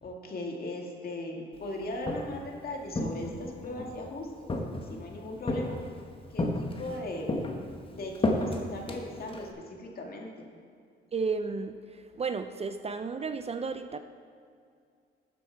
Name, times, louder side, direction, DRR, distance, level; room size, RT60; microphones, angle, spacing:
voice 1, 0.0-4.3 4.8-5.8 6.3-7.3 7.9-10.3, left 1 dB, 50° left, 1 dB, 2.1 m, -38 dB
Walk footsteps, 1.8-2.5 2.9-3.9 4.5-5.1 5.5-6.0 6.4-7.0 7.3-9.5, left 2 dB, 25° left, 1.3 m, -31 dB
voice 2, 11.1-14.0, right 4 dB, 30° right, 9 dB, 0.5 m, -33 dB
12.5 x 7.6 x 4.6 m, 2.3 s
cardioid pair, 90°, 20 cm